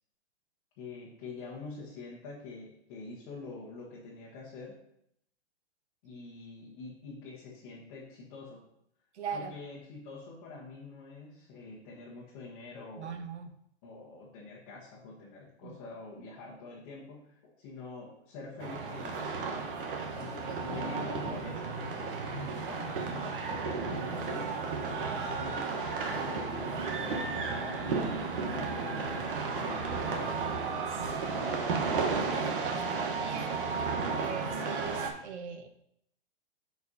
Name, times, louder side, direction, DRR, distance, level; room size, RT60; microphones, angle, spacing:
voice 1, 0.8-4.8 6.0-8.6 9.3-13.2 13.8-19.4 20.1-23.1 23.5-25.8 26.1-30.6 31.2-31.6, left 3 dB, 25° left, -5 dB, 1.3 m, -46 dB
voice 2, 9.1-9.5 13.0-13.5 15.6-15.7 30.9-31.4 32.1-35.7, right 6 dB, 70° right, 6 dB, 1.1 m, -40 dB
sound 1, 18.6-35.1, right 4 dB, 50° right, 1.2 m, -33 dB
10.0 x 4.6 x 2.8 m, 0.76 s
hypercardioid pair, 160°, 34 cm